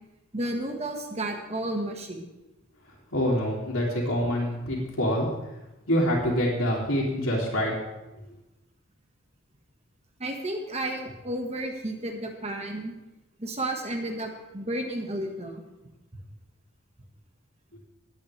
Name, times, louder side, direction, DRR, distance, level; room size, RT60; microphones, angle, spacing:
voice 1, 0.3-2.3 10.2-12.9 13.4-15.6, right 1 dB, 30° right, 3 dB, 1.6 m, -32 dB
voice 2, 3.1-5.3 5.9-7.7, equal, 85° left, -7 dB, 2.7 m, -25 dB
19.0 x 8.6 x 3.4 m, 1.0 s
head